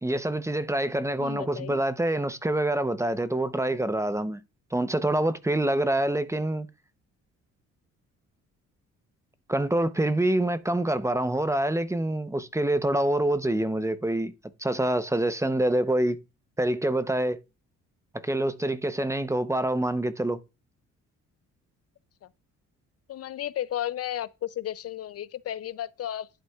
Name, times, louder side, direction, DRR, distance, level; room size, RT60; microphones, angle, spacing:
voice 1, 0.0-4.4 4.7-6.7 9.5-14.3 14.6-16.2 16.6-17.4 18.1-20.4, right 1 dB, 10° right, 0.7 m, -26 dB
voice 2, 1.2-1.8 22.2-22.3 23.1-26.3, left 12 dB, 55° left, 0.5 m, -33 dB
11.0 x 8.3 x 2.3 m
cardioid pair, 90°, 30 cm